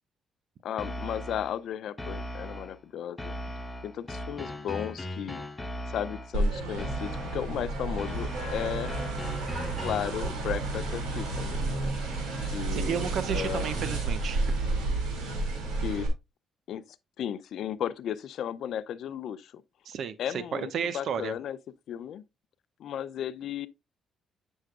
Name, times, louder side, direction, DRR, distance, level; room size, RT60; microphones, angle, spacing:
voice 1, 0.6-3.3 3.8-5.4 5.9-8.9 9.8-11.9 12.5-13.7 15.8-16.1 16.7-16.8 17.2-19.6 20.2-21.6 21.9-22.2 22.8-23.7, left 10 dB, 70° left, 0.4 m, -35 dB
sound 1, 0.8-1.6 2.0-2.8 3.2-6.4 6.8-7.6 8.0-10.2, equal, 15° left, 0.8 m, -38 dB
sound 2, 6.3-16.1, right 3 dB, 85° right, 2.4 m, -31 dB
voice 2, 12.7-14.5 19.9-21.3, right 7 dB, 65° right, 0.6 m, -33 dB
7.5 x 6.2 x 2.4 m
cardioid pair, 90°, 0 cm